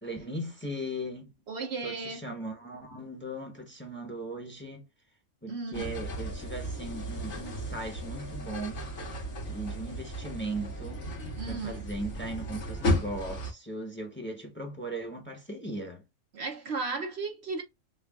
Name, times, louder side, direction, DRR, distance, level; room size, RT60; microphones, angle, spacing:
voice 1, 0.0-1.3 1.8-4.8 5.4-8.9 9.5-11.1 11.4-16.0, right 1 dB, 10° left, 1.0 m, -38 dB
voice 2, 1.5-2.2 5.5-5.9 11.4-11.8 16.3-17.6, right 4 dB, 55° right, 0.9 m, -35 dB
sound 1, 5.7-13.5, equal, 85° left, 2.0 m, -34 dB
6.4 x 2.4 x 2.4 m
omnidirectional pair, 1.4 m